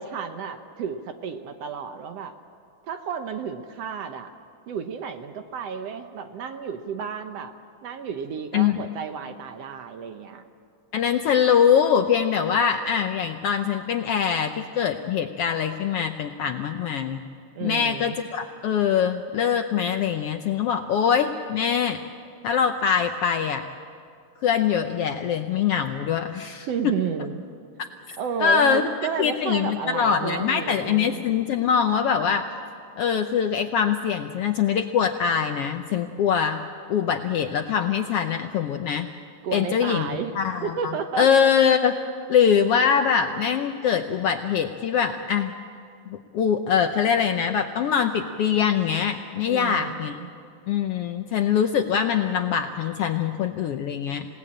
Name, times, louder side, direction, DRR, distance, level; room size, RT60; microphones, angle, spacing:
voice 1, 0.0-2.3 2.9-4.3 4.7-7.5 7.8-10.4 17.6-18.2 26.7-27.4 28.2-31.2 39.4-41.3 49.5-50.3, right 7 dB, 65° right, 7 dB, 1.9 m, -32 dB
voice 2, 8.5-8.9 10.9-17.2 17.6-22.0 22.4-23.6 24.4-26.9 28.1-28.9 29.2-32.5 33.0-36.6 36.9-39.1 39.5-40.1 40.3-41.9 42.3-45.5 46.1-50.2 50.7-54.3, left 7 dB, 75° left, 7 dB, 1.4 m, -23 dB
27.5 x 18.0 x 8.7 m, 2.4 s
omnidirectional pair, 3.4 m